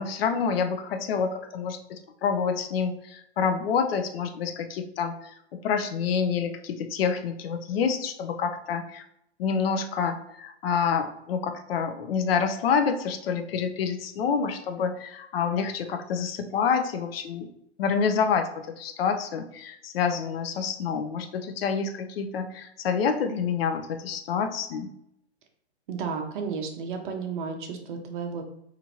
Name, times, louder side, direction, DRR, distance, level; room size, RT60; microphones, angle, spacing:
voice 1, 0.0-9.0 9.4-17.5 17.8-24.9, left 6 dB, 60° left, 7 dB, 0.5 m, -27 dB
voice 2, 25.9-28.4, right 5 dB, 45° right, 4 dB, 0.6 m, -32 dB
2.9 x 2.5 x 2.7 m, 0.77 s
hypercardioid pair, 140°, 34 cm